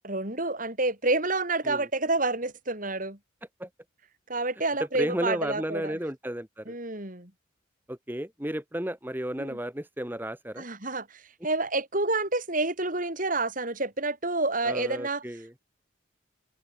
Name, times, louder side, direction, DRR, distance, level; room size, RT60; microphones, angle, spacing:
voice 1, 0.0-3.2 4.3-6.0 6.7-7.3 9.4-9.6 10.6-15.2, right 2 dB, 40° right, 4.4 m, -29 dB
voice 2, 5.0-6.8 7.9-10.6 14.6-15.5, right 1 dB, 10° right, 1.5 m, -33 dB
head